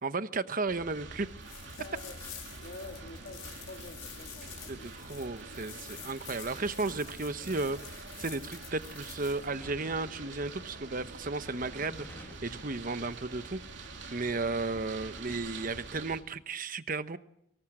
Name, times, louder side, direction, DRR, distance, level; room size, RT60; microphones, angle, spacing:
voice 1, 0.0-1.3 4.7-13.6 14.1-17.2, right 3 dB, 40° right, 12 dB, 1.0 m, -34 dB
sound 1, 0.7-16.2, right 3 dB, 60° right, 3.3 m, -46 dB
sound 2, 1.4-9.5, left 11 dB, 90° left, 4.9 m, -49 dB
voice 2, 1.6-2.2 2.6-4.9, left 2 dB, 50° left, 4 dB, 2.1 m, -47 dB
sound 3, 9.6-10.1 10.6-10.7 11.5-12.5 12.8-13.1, left 1 dB, 10° left, 1.9 m, -52 dB
24.5 x 19.5 x 7.6 m, 0.79 s
head